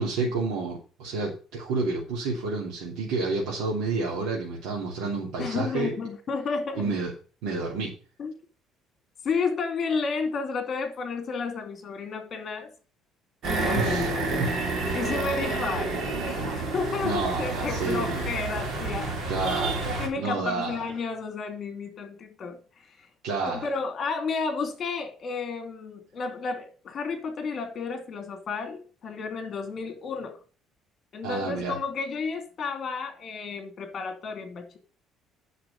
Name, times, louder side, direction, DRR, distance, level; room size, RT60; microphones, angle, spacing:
voice 1, 0.0-5.9 6.7-7.1 7.4-7.9 13.7-14.1 14.4-14.5 17.0-18.3 19.3-20.8 23.2-23.7 31.2-31.8, right 3 dB, 90° right, 3.2 m, -29 dB
voice 2, 5.4-6.9 8.2-8.3 9.2-12.7 13.5-14.4 14.9-19.1 20.0-22.6 23.0-23.1 23.4-30.4 31.1-34.8, left 4 dB, 30° left, 2.9 m, -32 dB
sound 1, 13.4-20.1, right 3 dB, 45° right, 3.0 m, -29 dB
9.5 x 6.6 x 5.6 m
cardioid pair, 165°, 0 cm